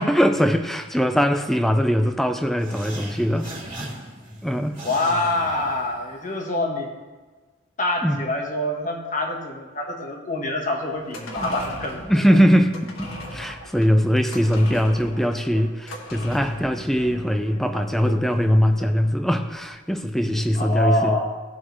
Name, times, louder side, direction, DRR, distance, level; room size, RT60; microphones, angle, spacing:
voice 1, 0.0-3.5 4.4-4.8 8.0-8.2 11.4-11.5 12.1-21.2, equal, ahead, 7 dB, 0.5 m, -21 dB
sound 1, 2.6-6.3, right 1 dB, 20° right, 2.3 m, -38 dB
voice 2, 4.8-6.9 7.8-12.4 20.5-21.3, left 1 dB, 35° left, 1 dB, 1.4 m, -26 dB
sound 2, 10.9-19.6 19.9-20.0, left 1 dB, 80° left, 1.6 m, -38 dB
18.0 x 6.1 x 3.1 m, 1.3 s
head